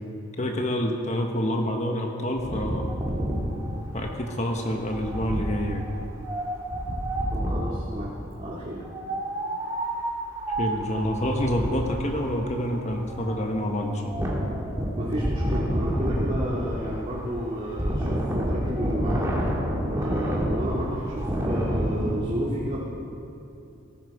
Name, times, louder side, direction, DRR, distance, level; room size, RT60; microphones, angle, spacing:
voice 1, 0.0-3.0 3.9-5.8 10.6-14.3, equal, 35° left, 2 dB, 1.1 m, -28 dB
Wind, 2.4-7.8 8.8-22.1, equal, 15° right, 2.4 m, -29 dB
voice 2, 7.3-8.8 14.9-19.3 19.7-22.8, equal, 30° right, -6 dB, 2.2 m, -31 dB
18.0 x 16.0 x 4.8 m, 2.7 s
head